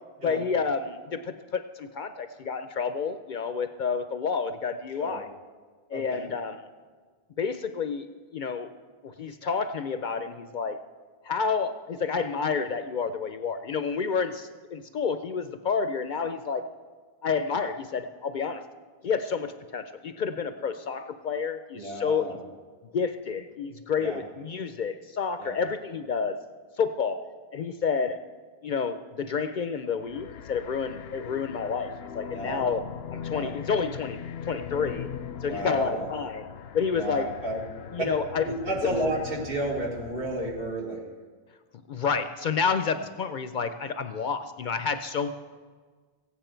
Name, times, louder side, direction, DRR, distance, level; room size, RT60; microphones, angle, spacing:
voice 1, 0.2-5.3 5.9-6.6 7.4-8.1 8.3-8.7 9.0-10.8 11.2-16.6 17.2-18.6 19.0-22.4 22.9-26.4 26.8-27.2 27.5-28.2 28.6-32.8 33.1-34.2 34.4-35.1 35.4-36.5 36.7-37.3 37.9-38.5 38.8-39.0 41.9-45.3, left 5 dB, 60° left, 9 dB, 0.6 m, -29 dB
voice 2, 5.9-6.3 21.7-22.4 24.0-24.2 25.4-25.6 32.3-32.7 33.3-33.5 35.5-36.1 36.9-37.6 38.0-38.1 38.4-41.0, right 1 dB, 65° right, -1 dB, 2.1 m, -31 dB
sound 1, 30.0-40.8, left 8 dB, 80° left, 0.8 m, -40 dB
16.0 x 9.1 x 4.4 m, 1.5 s
omnidirectional pair, 1.0 m